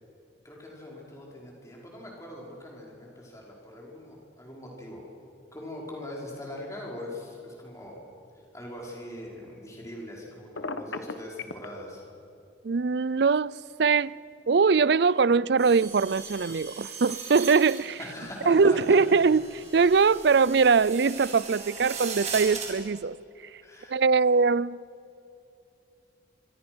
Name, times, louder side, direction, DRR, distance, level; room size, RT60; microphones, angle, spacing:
voice 1, 0.4-5.1 5.5-8.0 8.5-12.0 18.0-19.0 23.6-23.9, left 1 dB, 15° left, 5.2 m, -41 dB
Telephone, 10.6-11.7, left 3 dB, 85° left, 1.4 m, -34 dB
voice 2, 12.6-14.1 14.5-18.0 18.5-23.1 23.9-24.8, right 5 dB, 60° right, 0.5 m, -22 dB
sound 1, 15.6-22.7, right 6 dB, 35° right, 4.4 m, -39 dB
26.0 x 25.5 x 6.3 m
head